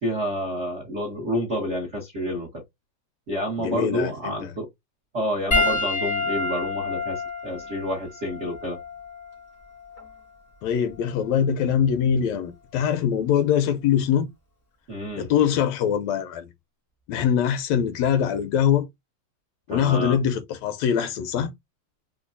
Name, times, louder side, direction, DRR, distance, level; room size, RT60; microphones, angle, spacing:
voice 1, 0.0-2.6 3.3-4.7 5.1-8.8 14.9-15.3 19.7-20.2, equal, 75° right, 0.6 m, -29 dB
voice 2, 3.6-4.4 10.6-14.3 15.2-16.5 17.1-18.9 19.7-21.5, left 8 dB, 75° left, 1.7 m, -23 dB
Piano, 5.5-10.2 11.1-11.3 13.2-13.3, left 3 dB, 50° left, 0.4 m, -28 dB
4.5 x 2.3 x 2.5 m
omnidirectional pair, 3.3 m